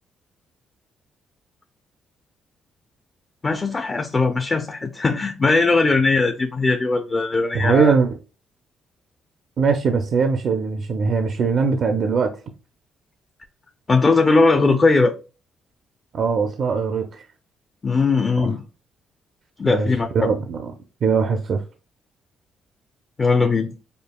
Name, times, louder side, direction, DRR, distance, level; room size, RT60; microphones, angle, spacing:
voice 1, 3.4-7.9 13.9-15.1 17.8-18.6 19.6-20.3 23.2-23.7, left 3 dB, 30° left, 0.4 m, -19 dB
voice 2, 7.5-8.2 9.6-12.3 16.1-17.2 19.6-19.9 20.1-20.7 21.0-21.6, right 5 dB, 60° right, 0.4 m, -21 dB
5.1 x 2.3 x 2.2 m
cardioid pair, 90°, 0 cm